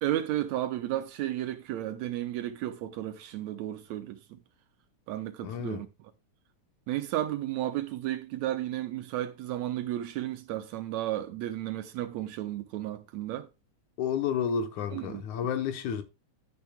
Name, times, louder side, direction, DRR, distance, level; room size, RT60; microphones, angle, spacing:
voice 1, 0.0-4.4 5.1-6.1 6.9-13.5 14.9-15.5, right 13 dB, 75° right, 1.9 m, -33 dB
voice 2, 5.4-5.8 14.0-16.0, left 7 dB, 75° left, 2.4 m, -31 dB
12.5 x 9.2 x 2.3 m
omnidirectional pair, 3.5 m